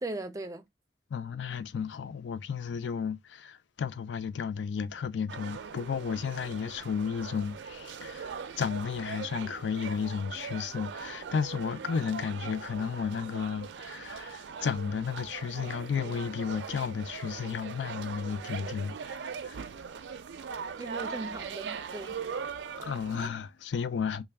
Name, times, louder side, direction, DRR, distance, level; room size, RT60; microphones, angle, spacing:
voice 1, 0.0-0.6 20.8-22.2, right 2 dB, 20° right, 0.4 m, -38 dB
voice 2, 1.1-19.6 22.8-24.2, left 6 dB, 85° left, 0.4 m, -33 dB
sound 1, 5.3-23.3, right 6 dB, 80° right, 0.4 m, -40 dB
3.2 x 2.1 x 3.3 m
head